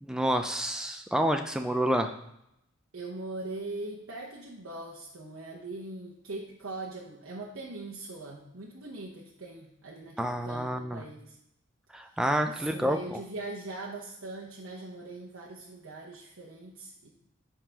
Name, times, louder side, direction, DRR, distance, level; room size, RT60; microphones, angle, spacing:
voice 1, 0.0-2.1 10.2-11.0 11.9-13.2, equal, 5° right, 5 dB, 0.3 m, -28 dB
voice 2, 2.9-11.4 12.4-17.1, right 2 dB, 70° right, -3 dB, 0.9 m, -41 dB
5.6 x 4.9 x 5.7 m, 0.80 s
head